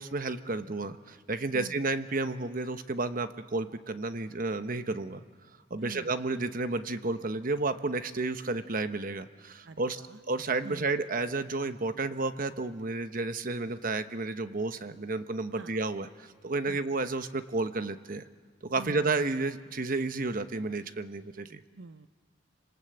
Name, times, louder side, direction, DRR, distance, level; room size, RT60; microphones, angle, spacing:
voice 1, 0.0-5.2 5.7-10.0 10.3-18.2 18.6-21.6, right 3 dB, 50° right, 10 dB, 1.0 m, -31 dB
voice 2, 5.8-6.2 9.6-10.2 10.6-10.9 15.6-15.8 16.7-16.9 18.8-19.2 21.8-22.1, right 2 dB, 70° right, 12 dB, 0.9 m, -45 dB
28.5 x 26.5 x 7.9 m, 1.5 s
head